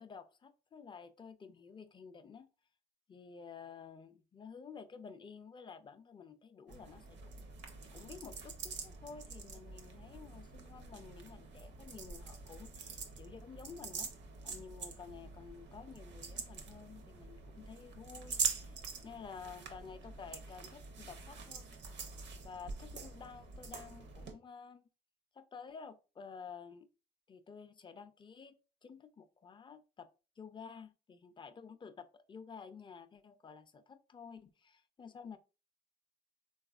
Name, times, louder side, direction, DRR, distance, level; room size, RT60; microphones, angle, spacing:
voice 1, 0.0-2.5 3.1-7.4 7.8-14.1 14.4-18.8 19.0-21.7 22.4-24.8 25.3-26.9 27.3-30.1 30.4-35.4, left 6 dB, 25° left, 0.4 m, -51 dB
sound 1, 6.7-24.3, right 5 dB, 65° right, 0.6 m, -45 dB
3.4 x 2.3 x 2.3 m
cardioid pair, 90°, 20 cm